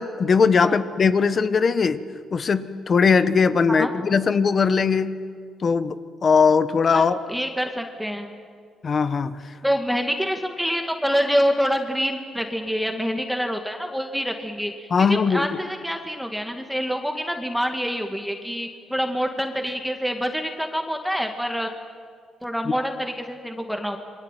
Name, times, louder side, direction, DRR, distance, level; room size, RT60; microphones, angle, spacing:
voice 1, 0.0-2.0 2.3-5.2 5.6-6.0 6.2-7.2 8.8-9.4 14.9-15.5, left 5 dB, 45° left, 12 dB, 1.3 m, -20 dB
voice 2, 7.3-8.3 9.6-21.7 22.4-24.0, equal, ahead, 4 dB, 2.1 m, -26 dB
27.5 x 23.0 x 9.2 m, 2.1 s
cardioid pair, 90°, 0 cm